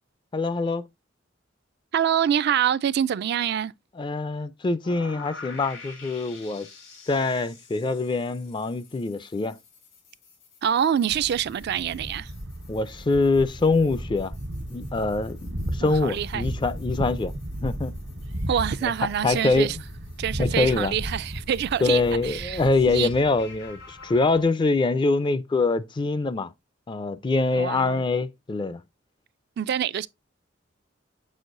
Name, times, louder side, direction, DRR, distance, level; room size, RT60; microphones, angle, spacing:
voice 1, 0.3-0.8 4.0-6.7 7.1-9.6 12.7-14.3 14.7-17.3 17.6-17.9 18.8-18.9 19.2-19.7 20.4-20.9 21.8-26.5 26.9-28.8, left 3 dB, 25° left, 0.4 m, -24 dB
voice 2, 1.9-3.7 10.6-12.3 15.8-16.5 18.5-19.8 20.2-23.1 27.5-28.0 29.6-30.1, right 9 dB, 55° right, 0.3 m, -26 dB
sound 1, 4.8-24.4, left 4 dB, 80° left, 3.5 m, -49 dB
Thunder, 11.1-24.4, right 1 dB, 85° right, 1.3 m, -35 dB
7.1 x 6.3 x 2.5 m
head